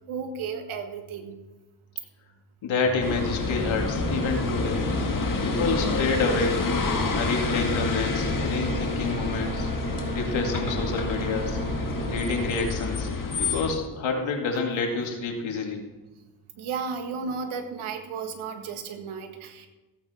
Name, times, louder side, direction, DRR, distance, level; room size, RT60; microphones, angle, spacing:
voice 1, 0.1-1.4 16.6-19.7, right 5 dB, 80° right, 6 dB, 1.7 m, -34 dB
voice 2, 2.6-4.8 5.4-6.7 7.1-9.7 10.1-11.6 12.1-13.1 13.4-15.8, left 4 dB, 70° left, 2 dB, 2.4 m, -28 dB
sound 1, 2.9-14.3, right 2 dB, 15° right, 2.9 m, -34 dB
sound 2, 3.0-13.7, left 4 dB, 40° left, 2.0 m, -28 dB
15.5 x 8.7 x 4.4 m, 1.1 s
cardioid pair, 70°, 48 cm